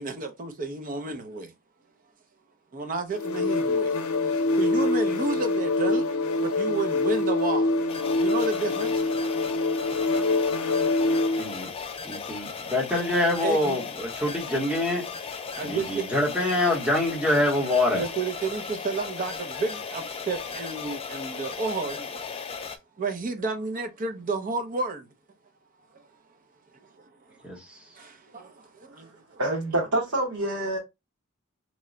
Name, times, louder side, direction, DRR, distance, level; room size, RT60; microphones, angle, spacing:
voice 1, 0.0-1.5 2.7-6.1 6.4-7.8 8.1-9.1 10.0-10.3 10.8-11.0 13.4-13.8 15.5-16.1 17.9-22.2 23.0-25.1 25.9-26.1 26.7-26.9 27.3-27.6 27.9-29.4, right 3 dB, 40° right, 0.6 m, -32 dB
sound 1, 3.1-11.5, left 2 dB, 80° left, 0.5 m, -25 dB
sound 2, 7.9-22.8, left 5 dB, 25° left, 0.4 m, -37 dB
voice 2, 11.3-11.7 12.0-15.0 15.6-18.0 27.4-27.9, left 1 dB, 5° right, 0.9 m, -25 dB
voice 3, 29.4-30.8, right 1 dB, 80° right, 1.2 m, -26 dB
3.0 x 2.2 x 3.7 m
head